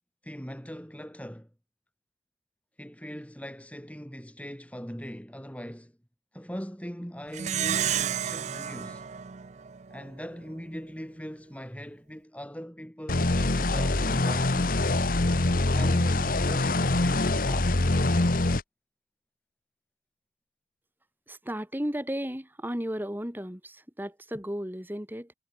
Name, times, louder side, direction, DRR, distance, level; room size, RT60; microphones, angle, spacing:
voice 1, 0.2-1.5 2.8-6.0 6.3-9.1 9.9-14.8 15.7-17.8, equal, 10° left, 7.0 m, -41 dB
Plucked string instrument, 7.3-10.1, right 9 dB, 40° right, 0.5 m, -31 dB
sound 1, 13.1-18.6, left 2 dB, 55° left, 1.2 m, -24 dB
voice 2, 21.3-25.3, equal, 10° right, 3.2 m, -34 dB
head